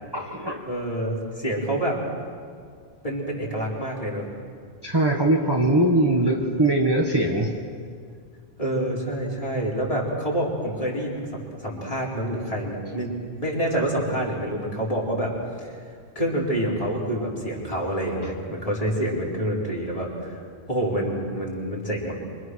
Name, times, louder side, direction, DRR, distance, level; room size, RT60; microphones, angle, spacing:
voice 1, 0.1-0.6 4.8-7.5, right 1 dB, 20° right, 0 dB, 1.6 m, -21 dB
voice 2, 0.7-2.0 3.0-4.3 8.6-13.1 13.4-15.3 15.6-15.7 16.1-20.4 20.7-22.1, right 1 dB, 30° left, -4 dB, 4.9 m, -27 dB
26.5 x 25.5 x 6.4 m, 2.1 s
omnidirectional pair, 1.1 m